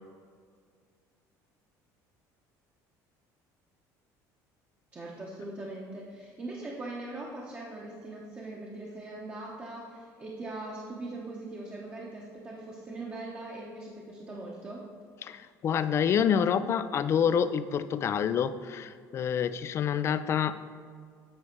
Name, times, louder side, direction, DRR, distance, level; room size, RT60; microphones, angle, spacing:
voice 1, 4.9-14.8, right 2 dB, 25° right, -4 dB, 0.9 m, -41 dB
voice 2, 15.2-20.6, left 8 dB, 40° left, 13 dB, 0.3 m, -27 dB
8.6 x 4.2 x 4.4 m, 2.1 s
cardioid pair, 125°, 7 cm